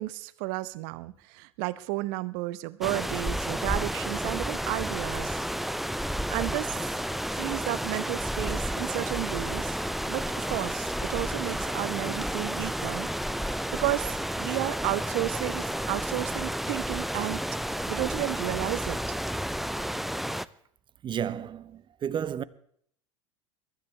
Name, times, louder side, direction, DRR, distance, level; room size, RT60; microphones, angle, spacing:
voice 1, 0.0-5.4 6.3-6.9 7.3-9.8 10.1-13.1 13.7-17.4 17.9-19.2, right 19 dB, 55° right, 0.9 m, -32 dB
sound 1, 2.8-20.5, equal, ahead, 0.5 m, -31 dB
sound 2, 11.0-14.2, left 4 dB, 20° left, 3.1 m, -54 dB
voice 2, 21.0-22.4, right 8 dB, 30° right, 0.9 m, -32 dB
22.5 x 13.5 x 3.3 m
hypercardioid pair, 80°, 16 cm